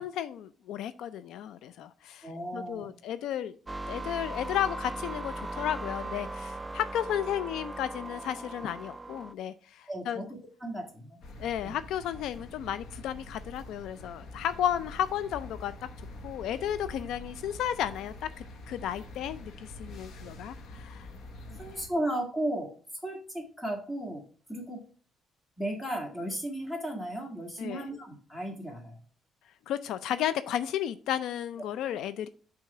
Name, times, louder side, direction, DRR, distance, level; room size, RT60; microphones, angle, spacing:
voice 1, 0.0-3.5 3.9-10.2 11.4-15.7 16.2-21.1 21.5-21.8 27.6-27.8 29.7-32.3, left 10 dB, 80° left, 0.3 m, -33 dB
voice 2, 2.2-2.9 9.9-11.7 21.6-22.7 23.0-24.2 24.5-24.8 25.6-29.0, right 1 dB, 5° left, 2.0 m, -35 dB
sound 1, 3.7-9.3, right 2 dB, 15° right, 0.3 m, -38 dB
sound 2, 11.2-21.9, left 1 dB, 60° left, 1.1 m, -46 dB
6.0 x 3.7 x 5.7 m
cardioid pair, 125°, 0 cm